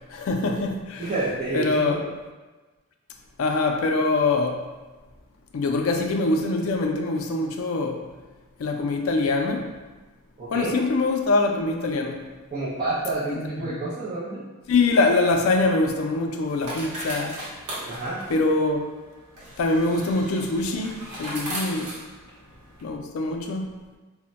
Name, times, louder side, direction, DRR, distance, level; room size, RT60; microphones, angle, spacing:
voice 1, 0.1-1.0 1.5-2.0 3.4-4.6 5.5-8.0 8.6-9.7 10.5-12.2 13.6-13.8 14.7-17.4 18.3-18.9 19.6-21.9 22.8-23.7, left 3 dB, 65° left, 3 dB, 0.3 m, -23 dB
voice 2, 1.0-2.0 10.4-10.8 12.5-14.4 17.9-18.2, right 2 dB, 35° right, -10 dB, 0.5 m, -29 dB
sound 1, 15.1-22.8, right 1 dB, 85° right, 0.8 m, -38 dB
2.1 x 2.1 x 3.8 m, 1.2 s
head